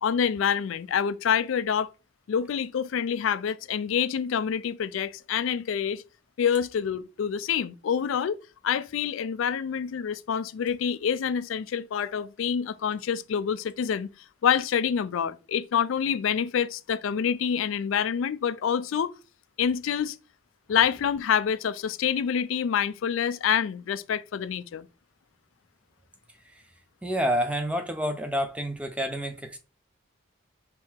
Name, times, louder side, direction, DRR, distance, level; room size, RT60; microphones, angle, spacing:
voice 1, 0.0-1.9 2.3-6.0 6.4-8.4 8.6-14.1 14.4-19.1 19.6-20.2 20.7-24.9, left 7 dB, 85° left, 0.4 m, -27 dB
voice 2, 27.0-29.6, equal, 5° right, 0.4 m, -28 dB
3.7 x 2.8 x 4.4 m
head